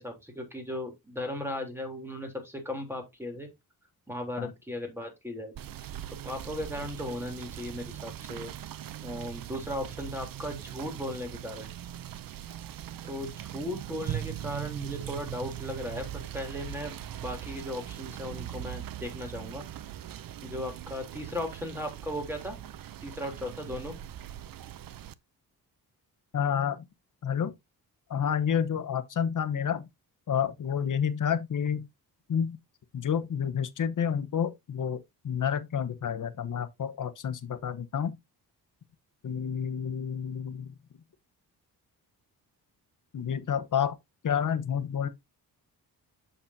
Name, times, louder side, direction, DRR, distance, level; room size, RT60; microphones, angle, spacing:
voice 1, 0.0-3.5 4.1-5.5 6.2-8.5 9.0-11.7 13.1-19.6 20.4-22.6 23.0-24.0, left 1 dB, 5° right, 3.3 m, -37 dB
Rain / Motor vehicle (road), 5.5-25.1, right 11 dB, 65° right, 0.6 m, -40 dB
voice 2, 26.3-26.9 27.2-27.5 28.1-29.9 30.3-31.9 32.3-32.6 32.9-35.0 35.2-38.2 39.2-40.7 43.1-44.0 44.2-45.1, left 8 dB, 55° left, 1.1 m, -29 dB
8.2 x 6.9 x 2.7 m
cardioid pair, 90°, 38 cm